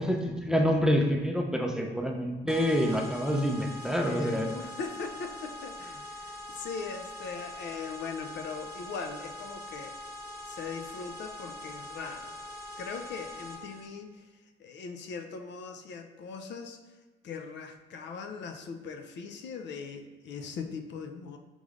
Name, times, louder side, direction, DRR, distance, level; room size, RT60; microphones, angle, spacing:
voice 1, 0.0-4.5, equal, 5° right, 2 dB, 0.4 m, -27 dB
sound 1, 2.5-13.9, left 1 dB, 50° right, 0.9 m, -43 dB
voice 2, 3.9-9.9 10.5-12.3 12.8-14.2 14.6-16.8 17.2-21.4, left 5 dB, 65° left, 5 dB, 0.4 m, -40 dB
5.2 x 3.2 x 2.4 m, 1.2 s
cardioid pair, 90°, 20 cm